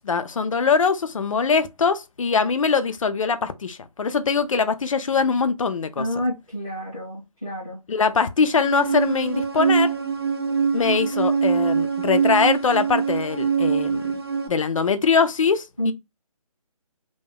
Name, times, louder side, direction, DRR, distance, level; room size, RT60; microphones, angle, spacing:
voice 1, 0.0-6.1 7.9-9.9 10.7-14.0 14.5-15.9, left 5 dB, 60° left, 0.4 m, -22 dB
voice 2, 6.0-7.8 15.8-15.9, equal, 5° right, 0.7 m, -29 dB
sound 1, 8.6-14.5, right 6 dB, 45° right, 0.4 m, -23 dB
2.2 x 2.2 x 3.3 m
hypercardioid pair, 180°, 19 cm